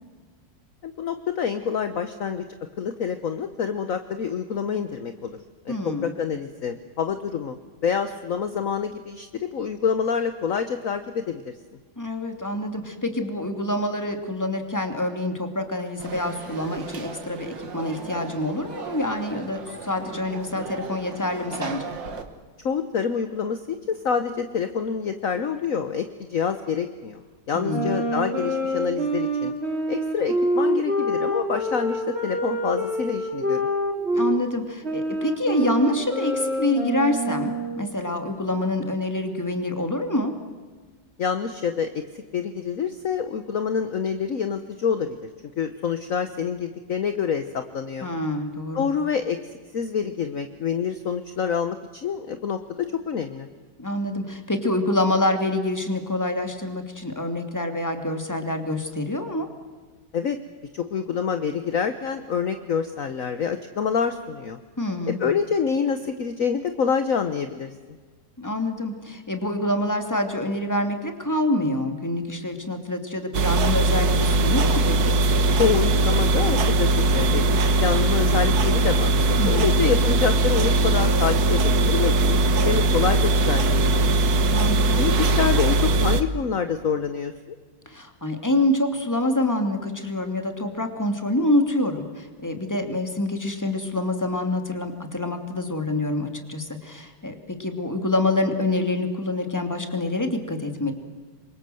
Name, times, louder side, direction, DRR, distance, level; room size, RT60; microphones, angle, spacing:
voice 1, 0.8-2.4 2.8-5.4 5.6-11.5 22.6-27.2 27.5-29.5 29.9-33.7 41.2-42.0 42.3-45.3 45.6-48.1 48.7-49.4 49.7-53.5 60.1-60.4 60.7-64.6 65.1-67.7 75.6-84.0 85.0-87.5, left 6 dB, 50° left, 9 dB, 1.4 m, -27 dB
voice 2, 5.7-6.2 12.0-21.8 27.5-27.9 34.1-40.3 48.0-48.9 53.8-59.5 64.8-65.2 68.4-75.1 79.4-79.8 84.5-85.0 87.9-100.9, left 1 dB, 10° left, 5 dB, 2.6 m, -26 dB
Conversation / Crowd, 16.0-22.2, right 5 dB, 85° right, 2.6 m, -37 dB
sound 1, 27.7-34.4 34.8-37.8, right 1 dB, 35° right, 3.1 m, -26 dB
sound 2, 73.3-86.2, right 2 dB, 60° right, 1.7 m, -20 dB
27.5 x 23.5 x 7.8 m, 1.4 s
omnidirectional pair, 2.0 m